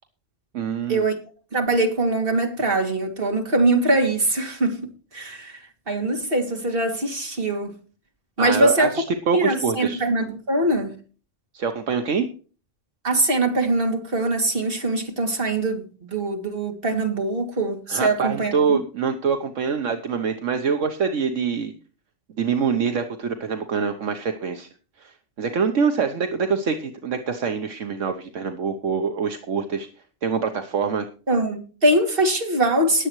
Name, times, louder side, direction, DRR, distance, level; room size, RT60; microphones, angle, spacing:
voice 1, 0.5-1.1 8.4-10.0 11.5-12.3 17.9-21.7 22.4-24.7 25.0-29.9 30.2-31.1, right 6 dB, 70° right, 1.3 m, -25 dB
voice 2, 1.5-7.7 8.4-9.0 9.3-10.9 13.0-18.8 31.3-33.1, right 2 dB, 45° right, 2.7 m, -22 dB
20.5 x 7.7 x 3.1 m
omnidirectional pair, 1.3 m